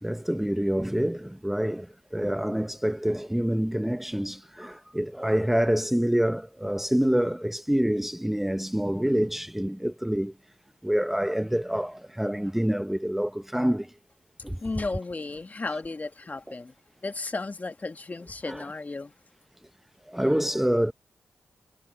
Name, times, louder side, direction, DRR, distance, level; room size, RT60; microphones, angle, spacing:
voice 1, 0.0-10.3 10.8-13.9 14.4-14.6 16.5-16.6 18.4-18.7 20.1-20.9, equal, 5° right, 0.7 m, -27 dB
voice 2, 14.4-16.7 17.0-19.1, left 3 dB, 35° left, 1.5 m, -34 dB
cardioid pair, 55°, 5 cm